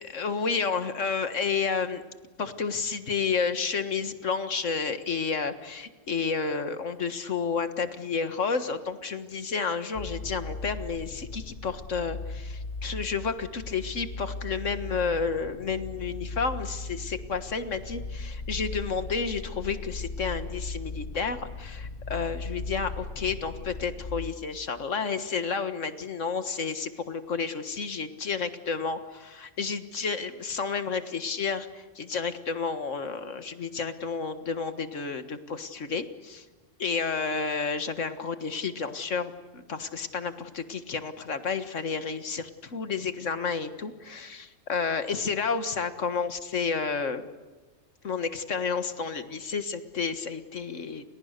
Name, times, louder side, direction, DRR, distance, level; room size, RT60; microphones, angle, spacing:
voice 1, 0.1-2.0 2.4-36.5 36.8-47.3 48.0-51.0, left 5 dB, 75° left, 10 dB, 1.9 m, -31 dB
sound 1, 10.0-24.3, left 3 dB, 50° left, 1.3 m, -38 dB
30.0 x 28.5 x 6.7 m, 1.3 s
omnidirectional pair, 1.3 m